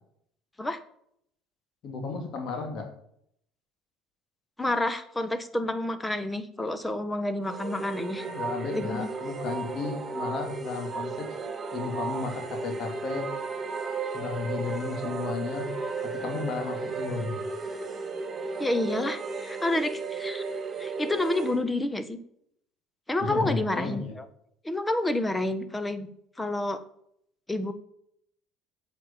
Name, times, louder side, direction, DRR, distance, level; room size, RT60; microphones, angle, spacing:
voice 1, 1.8-2.9 8.2-11.3 11.7-13.3 14.1-15.7 16.0-17.4 23.2-24.1, left 4 dB, 55° left, 4 dB, 2.8 m, -33 dB
voice 2, 4.6-8.3 8.7-9.1 18.6-20.4 20.8-22.2 23.1-24.2 24.6-26.1 26.4-26.8 27.5-27.7, left 1 dB, 15° left, 12 dB, 1.4 m, -29 dB
sound 1, 7.4-21.6, right 4 dB, 35° right, 2.7 m, -34 dB
8.3 x 7.3 x 7.3 m, 0.71 s
hypercardioid pair, 70°, 0 cm